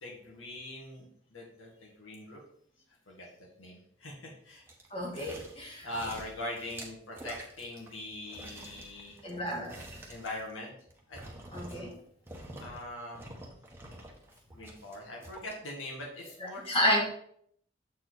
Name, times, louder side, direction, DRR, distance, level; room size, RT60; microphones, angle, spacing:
voice 1, 0.0-2.4 3.1-3.3 3.6-4.7 5.8-9.2 10.1-10.7 11.1-11.2 12.6-13.2 14.5-16.6, left 1 dB, 90° left, -1 dB, 2.0 m, -42 dB
sound 1, 4.7-5.6 5.9-8.0 8.3-12.0 12.3-12.8 13.1-15.5 16.0-16.1, right 1 dB, 10° right, 1.0 m, -47 dB
voice 2, 4.9-5.9 9.2-9.8 11.5-11.9 16.7-17.0, equal, 30° left, -1 dB, 1.7 m, -30 dB
7.5 x 4.4 x 4.0 m, 0.65 s
head